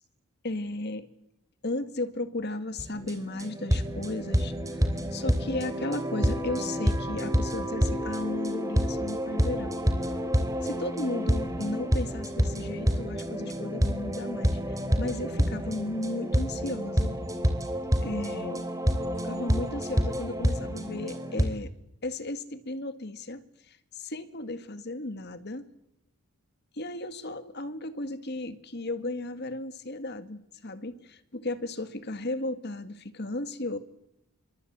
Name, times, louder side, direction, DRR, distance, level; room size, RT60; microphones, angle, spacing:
voice 1, 0.4-1.1 1.6-9.8 10.6-17.2 18.0-18.6 19.2-21.7 22.0-25.7 26.7-33.8, left 2 dB, 45° left, 11 dB, 1.9 m, -35 dB
sound 1, 2.8-21.4, equal, 15° right, 3.0 m, -28 dB
26.5 x 25.0 x 8.8 m, 0.83 s
head